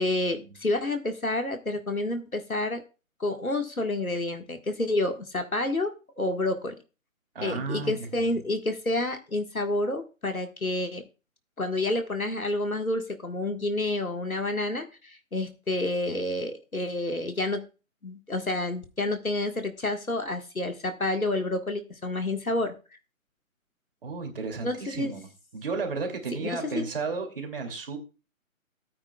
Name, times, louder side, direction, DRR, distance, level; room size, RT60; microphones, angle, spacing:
voice 1, 0.0-2.8 3.2-6.7 7.4-11.0 11.6-17.6 18.0-22.7 24.6-25.1 26.4-26.6, left 2 dB, 85° left, 6 dB, 1.8 m, -29 dB
voice 2, 7.3-7.9 8.2-8.3 24.0-25.3 25.5-28.0, right 4 dB, 40° right, 3 dB, 2.8 m, -33 dB
18.0 x 8.8 x 2.3 m, 0.33 s
figure-of-eight pair, 145°, 41 cm